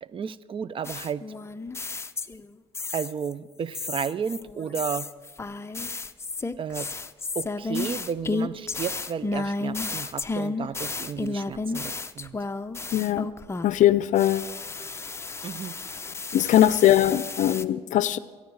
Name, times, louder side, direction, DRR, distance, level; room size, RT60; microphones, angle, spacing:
voice 1, 0.0-1.3 2.9-5.1 6.6-6.9 7.3-12.4 15.4-15.8, right 7 dB, 40° right, 18 dB, 0.5 m, -33 dB
sound 1, 0.8-2.5 2.7-3.3 3.7-13.8 14.2-17.6, left 3 dB, 20° left, 0.6 m, -32 dB
voice 2, 12.9-13.3 13.6-14.5 16.3-18.2, left 12 dB, 60° left, 17 dB, 0.5 m, -20 dB
24.5 x 9.5 x 4.8 m, 1.5 s
supercardioid pair, 85°, 14 cm